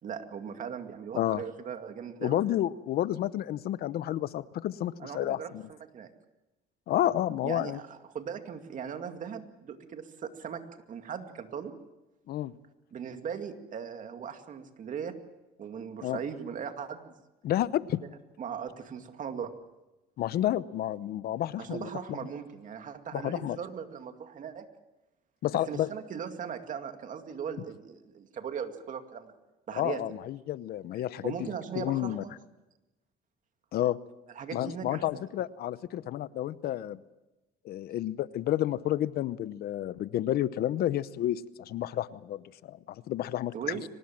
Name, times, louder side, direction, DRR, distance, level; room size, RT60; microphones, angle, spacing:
voice 1, 0.0-2.4 5.0-6.1 7.4-10.6 10.9-11.7 12.9-15.1 15.6-17.1 18.0-19.5 21.6-24.7 25.7-29.3 29.7-30.0 31.2-32.4 34.3-35.0 43.5-43.8, right 7 dB, 50° right, 7 dB, 2.3 m, -39 dB
voice 2, 2.2-5.6 6.9-7.8 12.3-12.5 16.0-16.2 17.4-18.0 20.2-22.2 23.1-23.6 25.4-25.9 29.7-31.5 31.8-32.2 33.7-34.0 34.5-37.0 37.6-43.8, left 12 dB, 65° left, 16 dB, 0.8 m, -30 dB
24.0 x 19.5 x 7.5 m, 1.0 s
cardioid pair, 110°, 17 cm